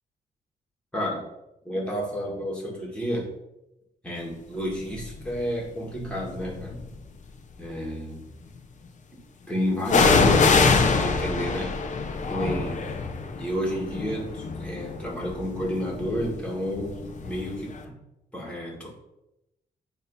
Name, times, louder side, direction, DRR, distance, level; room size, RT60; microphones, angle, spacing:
voice 1, 0.9-1.2 1.6-3.3 4.0-6.8 7.6-8.2 9.5-11.8 12.3-12.9 13.4-18.0 18.3-18.9, equal, 5° left, -3 dB, 2.0 m, -30 dB
sound 1, 4.9-5.3 6.0-7.0 9.9-17.5 17.8-17.9, left 4 dB, 55° left, 0.8 m, -24 dB
9.2 x 3.1 x 5.6 m, 0.91 s
wide cardioid pair, 145°, 15 cm